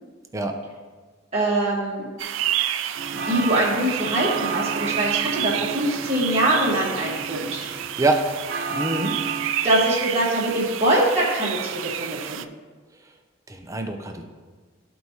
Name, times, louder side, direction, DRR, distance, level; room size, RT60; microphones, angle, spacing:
voice 1, 1.3-2.0 3.1-7.6 9.6-12.4, right 1 dB, 30° right, -6 dB, 1.1 m, -23 dB
sound 1, 2.2-12.4, right 11 dB, 70° right, 0.4 m, -30 dB
sound 2, 3.0-9.5, right 5 dB, 50° right, 0.7 m, -32 dB
voice 2, 8.7-9.1 13.5-14.2, right 2 dB, 15° right, 4 dB, 0.6 m, -24 dB
13.0 x 4.6 x 2.8 m, 1.4 s
head